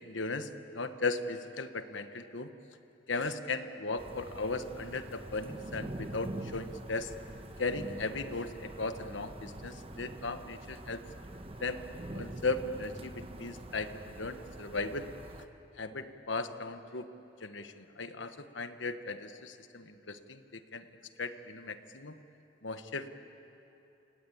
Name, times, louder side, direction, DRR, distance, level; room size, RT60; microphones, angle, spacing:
voice 1, 0.0-2.5 3.1-7.1 7.6-11.0 11.6-11.8 12.1-15.1 15.8-17.1 17.4-20.8 21.2-22.1 22.6-23.1, left 3 dB, 75° left, 9 dB, 1.3 m, -37 dB
sound 1, 4.0-15.5, right 1 dB, 30° right, 1.1 m, -45 dB
29.0 x 18.5 x 8.7 m, 3.0 s
head